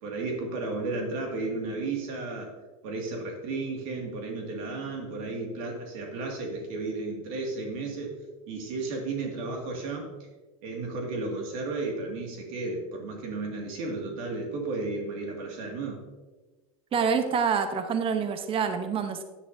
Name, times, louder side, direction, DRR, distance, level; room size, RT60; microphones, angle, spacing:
voice 1, 0.0-2.5 2.8-8.1 8.5-10.1 10.6-16.0, right 3 dB, 70° right, 1 dB, 2.2 m, -33 dB
voice 2, 16.9-19.2, right 6 dB, 30° right, 8 dB, 0.9 m, -26 dB
10.0 x 10.0 x 2.7 m, 1.2 s
supercardioid pair, 110°, 18 cm